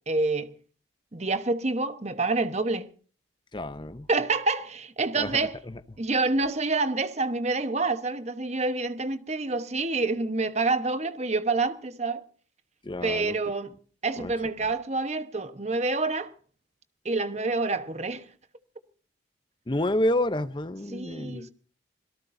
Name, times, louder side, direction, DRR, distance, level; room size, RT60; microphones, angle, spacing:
voice 1, 0.1-0.5 1.1-2.9 4.1-5.6 6.0-12.2 13.0-13.7 14.0-16.3 17.0-18.3 20.9-21.5, right 3 dB, 35° right, 1.1 m, -27 dB
voice 2, 3.5-4.1 5.2-5.4 5.7-5.8 12.8-13.4 14.2-14.3 19.7-21.5, left 1 dB, 25° left, 0.6 m, -29 dB
25.5 x 18.0 x 2.6 m
head